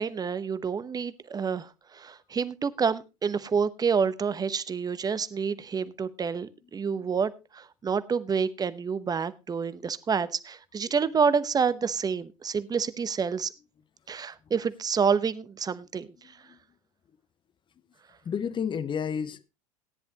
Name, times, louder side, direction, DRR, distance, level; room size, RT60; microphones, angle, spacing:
voice 1, 0.0-13.5 14.1-16.4, right 6 dB, 20° right, 0.9 m, -28 dB
voice 2, 16.2-16.6 18.2-19.5, left 7 dB, 25° left, 0.9 m, -32 dB
17.0 x 10.0 x 2.9 m
hypercardioid pair, 80°, 19 cm